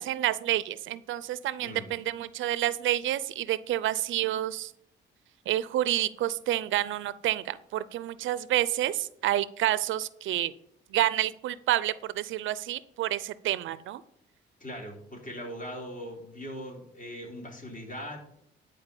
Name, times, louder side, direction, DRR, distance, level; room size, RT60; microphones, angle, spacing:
voice 1, 0.0-4.7 5.5-10.5 10.9-14.0, right 13 dB, 75° right, 17 dB, 0.6 m, -29 dB
voice 2, 14.6-18.2, equal, 40° left, 0 dB, 3.8 m, -40 dB
10.5 x 4.6 x 7.0 m, 0.71 s
cardioid pair, 90°, 20 cm